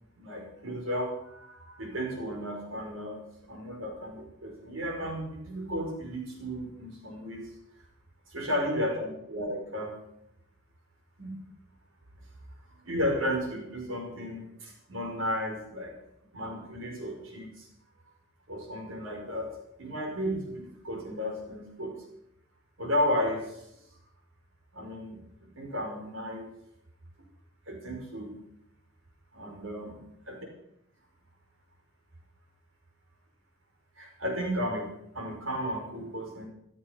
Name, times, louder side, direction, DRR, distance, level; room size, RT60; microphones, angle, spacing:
voice 1, 0.2-7.4 8.3-10.0 11.2-11.4 12.9-15.9 16.3-17.7 18.5-19.5 19.8-22.0 22.8-23.6 24.7-26.5 27.7-28.3 29.3-29.9 34.0-34.9 35.1-36.5, equal, 75° right, 1 dB, 5.2 m, -33 dB
15.0 x 13.0 x 5.9 m, 0.79 s
head